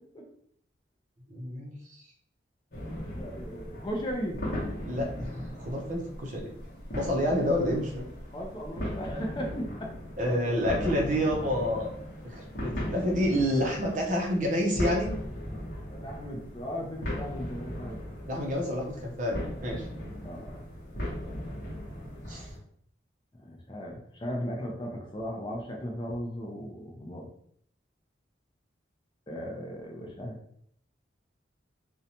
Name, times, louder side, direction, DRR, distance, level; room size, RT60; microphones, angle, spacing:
voice 1, 1.3-2.0 4.9-6.5 6.9-8.0 10.2-11.9 12.2-15.1 18.3-19.9 22.3-22.5, equal, 40° right, 0 dB, 0.5 m, -29 dB
sound 1, 2.7-22.6, equal, 50° left, 0.9 m, -38 dB
voice 2, 3.1-4.4 8.3-9.9 10.2-10.6 15.9-18.0 20.2-20.7 23.4-27.3 29.3-30.4, equal, 25° left, 0 dB, 0.4 m, -37 dB
2.6 x 2.1 x 2.8 m, 0.67 s
head